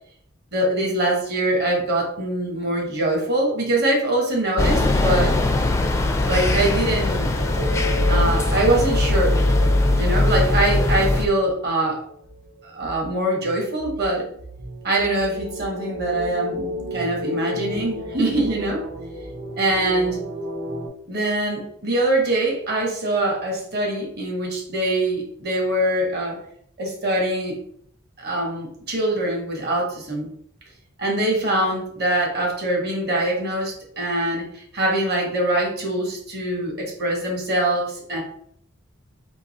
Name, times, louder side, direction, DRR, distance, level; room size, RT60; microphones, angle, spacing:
voice 1, 0.5-5.4 6.3-7.3 8.1-9.4 9.9-12.0 12.6-14.2 14.8-18.8 19.6-20.2 21.1-26.4 26.8-27.6 28.2-30.3 31.0-38.2, right 1 dB, 50° right, 0 dB, 1.3 m, -23 dB
sound 1, 4.6-11.3, left 2 dB, 15° left, 0.4 m, -20 dB
sound 2, 7.4-13.1 13.4-20.9, left 1 dB, 70° right, 0.9 m, -33 dB
3.9 x 2.7 x 4.2 m, 0.65 s
head